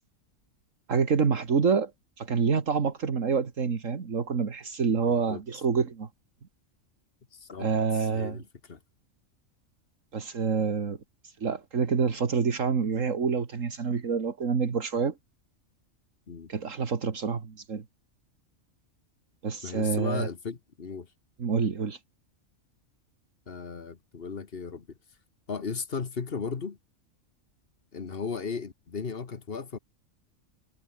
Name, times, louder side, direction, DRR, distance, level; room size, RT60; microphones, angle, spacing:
voice 1, 0.9-1.9 2.2-6.1 7.6-8.4 10.1-11.0 11.4-15.1 16.5-17.8 19.4-20.3 21.4-22.0, right 5 dB, 75° right, 2.2 m, -27 dB
voice 2, 5.1-5.4 7.3-7.7 7.9-8.8 16.3-16.5 19.6-21.1 23.5-24.9 25.5-26.8 27.9-29.8, left 5 dB, 45° left, 1.6 m, -36 dB
omnidirectional pair, 1.4 m